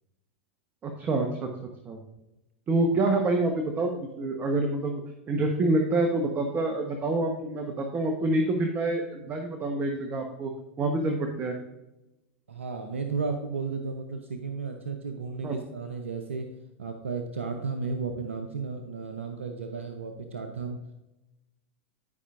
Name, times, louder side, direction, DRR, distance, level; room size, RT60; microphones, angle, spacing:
voice 1, 0.8-1.5 1.8-2.0 2.7-5.0 5.3-10.5 10.8-11.5 15.4-15.6, right 2 dB, 30° right, 3 dB, 1.1 m, -27 dB
voice 2, 12.5-16.5 16.8-20.8, right 4 dB, 90° right, 5 dB, 0.7 m, -33 dB
12.0 x 5.5 x 2.5 m, 0.98 s
hypercardioid pair, 100°, 7 cm